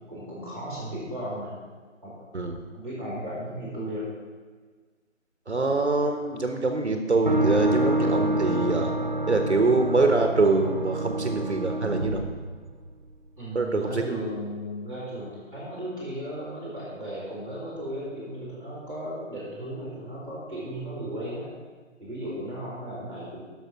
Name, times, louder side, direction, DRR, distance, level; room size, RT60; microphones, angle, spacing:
voice 1, 0.1-1.5 2.0-2.3 2.7-4.1 13.4-21.5 22.0-23.4, equal, 5° left, -13 dB, 3.1 m, -35 dB
voice 2, 5.5-9.0 9.3-12.2 13.5-14.0, right 3 dB, 60° right, 4 dB, 1.2 m, -24 dB
sound 1, 7.3-13.1, right 1 dB, 40° right, 0.5 m, -27 dB
11.0 x 6.5 x 6.0 m, 1.5 s
figure-of-eight pair, 155°, 38 cm